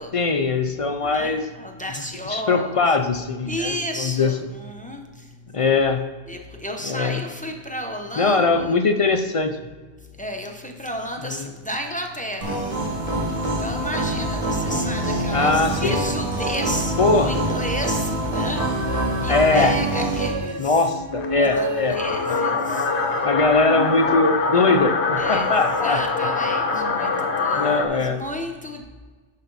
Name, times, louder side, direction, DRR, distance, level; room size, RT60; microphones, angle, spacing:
voice 1, 0.1-1.4 2.2-4.4 5.5-6.0 6.8-7.2 8.2-9.6 11.3-11.5 15.3-16.0 17.0-17.4 19.3-19.7 20.6-21.9 22.3-22.4 23.2-26.0 26.8-27.3 27.5-28.2, left 3 dB, 50° left, 7 dB, 0.4 m, -21 dB
voice 2, 1.0-3.0 3.5-5.0 6.3-8.7 10.2-12.6 13.6-18.7 19.2-20.8 21.3-22.9 25.2-27.1 27.4-28.8, equal, 10° left, 2 dB, 0.8 m, -32 dB
sound 1, 12.4-20.3, right 1 dB, 30° right, 1.7 m, -25 dB
sound 2, 18.9-24.7, right 4 dB, 55° right, 1.0 m, -33 dB
sound 3, 21.1-27.8, left 4 dB, 70° left, 1.2 m, -24 dB
10.5 x 5.0 x 4.0 m, 1.4 s
omnidirectional pair, 1.2 m